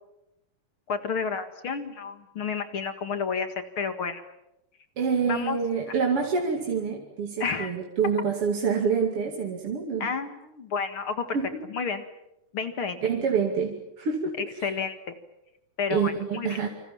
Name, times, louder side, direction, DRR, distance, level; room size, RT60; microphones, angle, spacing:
voice 1, 0.9-4.2 5.2-5.6 7.4-7.7 10.0-11.3 11.7-12.0 12.5-13.0 14.6-15.0 15.8-16.6, left 5 dB, 45° left, 9 dB, 2.3 m, -30 dB
voice 2, 5.0-10.1 11.3-11.5 13.0-14.7 15.9-16.7, right 6 dB, 45° right, 1 dB, 3.2 m, -27 dB
28.0 x 26.5 x 7.2 m, 0.85 s
omnidirectional pair, 3.9 m